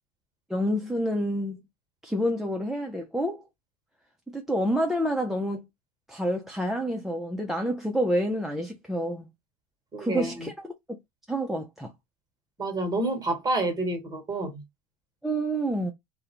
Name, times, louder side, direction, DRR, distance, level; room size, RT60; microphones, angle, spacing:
voice 1, 0.5-1.6 2.0-3.4 4.3-5.7 6.1-9.3 10.0-11.0 11.3-11.9 15.2-15.9, equal, ahead, 0.3 m, -28 dB
voice 2, 9.9-10.5 12.6-14.6, right 2 dB, 20° right, 1.1 m, -29 dB
2.3 x 2.0 x 2.8 m
hypercardioid pair, 100°, 19 cm